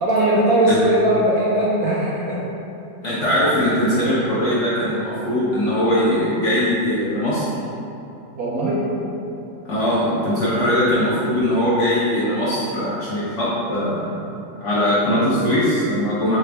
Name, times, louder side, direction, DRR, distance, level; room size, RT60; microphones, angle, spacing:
voice 1, 0.0-2.4 8.4-8.9, right 1 dB, 65° right, -5 dB, 0.9 m, -19 dB
voice 2, 3.0-7.5 9.6-14.1 14.6-16.4, equal, 60° left, -9 dB, 0.8 m, -20 dB
3.7 x 3.4 x 3.3 m, 2.8 s
omnidirectional pair, 1.9 m